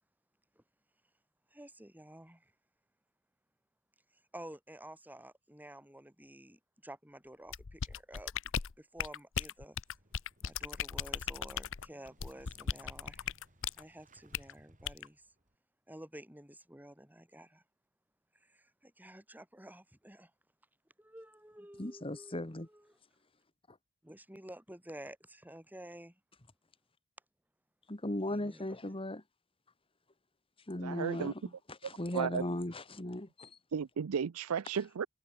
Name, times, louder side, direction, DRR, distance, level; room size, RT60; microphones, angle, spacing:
voice 1, 1.5-2.5 4.1-8.3 8.8-9.8 10.4-13.3 13.8-15.3 15.9-17.6 18.4-20.3 21.0-23.0 24.0-26.2 28.3-29.0, right 1 dB, 10° right, 5.3 m, -51 dB
sound 1, 7.5-13.8 14.3-14.5 14.9-15.1, left 8 dB, 60° left, 0.7 m, -37 dB
Motorcycle / Engine starting, 9.7-15.6, right 1 dB, 35° right, 5.4 m, -65 dB
voice 2, 21.8-22.7 23.7-23.8 27.9-29.2 30.7-31.4 31.7-33.6, left 1 dB, 25° left, 1.9 m, -37 dB
voice 3, 30.8-31.3 32.1-32.4 33.7-35.1, right 7 dB, 70° right, 0.5 m, -34 dB
head